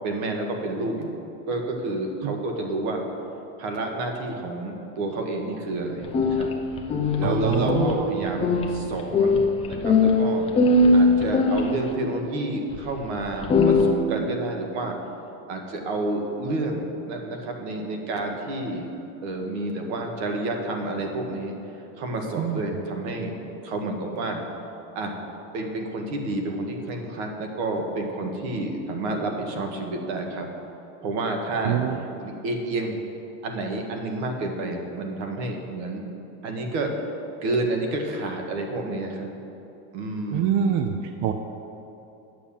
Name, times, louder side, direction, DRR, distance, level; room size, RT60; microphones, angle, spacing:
voice 1, 0.0-1.1 1.5-3.0 3.6-6.5 7.2-9.4 9.7-10.5 10.9-14.9 15.5-18.9 19.2-21.5 22.0-23.4 23.6-24.4 24.9-25.1 25.5-30.5 31.0-31.8 32.2-33.0 33.4-36.0 36.4-36.9 37.4-39.3 39.9-40.9, right 2 dB, 80° right, 3 dB, 1.7 m, -29 dB
sound 1, 6.0-11.9 12.7-12.8 13.2-13.9, left 3 dB, 15° left, 0.6 m, -21 dB
voice 2, 7.2-8.1 22.4-22.6 31.5-32.0 40.3-41.3, right 9 dB, 50° right, 6 dB, 0.6 m, -25 dB
9.3 x 6.8 x 7.2 m, 2.9 s
cardioid pair, 165°, 33 cm